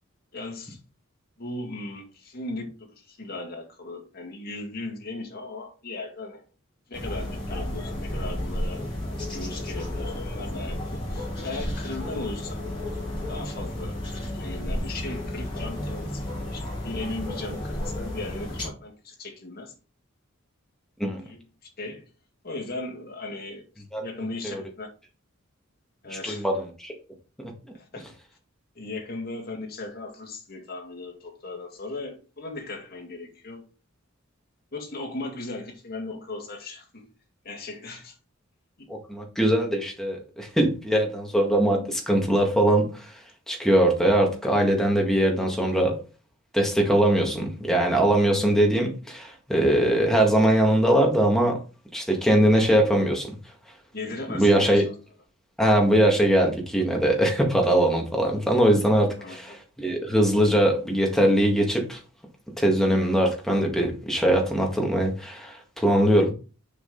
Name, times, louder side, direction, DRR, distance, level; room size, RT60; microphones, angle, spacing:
voice 1, 0.3-0.8 1.4-6.4 6.9-8.8 9.3-12.6 13.3-14.0 14.3-19.7 21.1-21.4 21.8-22.1 22.4-23.6 24.0-24.9 26.0-26.5 27.7-28.0 28.8-33.6 34.7-37.1 37.4-38.2 53.9-54.9 59.2-59.6, left 2 dB, 45° left, 2.2 m, -37 dB
sound 1, 6.9-18.7, left 1 dB, 25° left, 4.3 m, -32 dB
voice 2, 26.1-26.5 26.8-26.9 27.4-27.5 38.9-43.1 43.5-46.0 46.5-51.6 51.9-53.4 54.3-54.8 55.6-59.5 59.8-62.0 62.6-66.3, right 1 dB, ahead, 1.8 m, -21 dB
6.9 x 5.1 x 3.9 m
head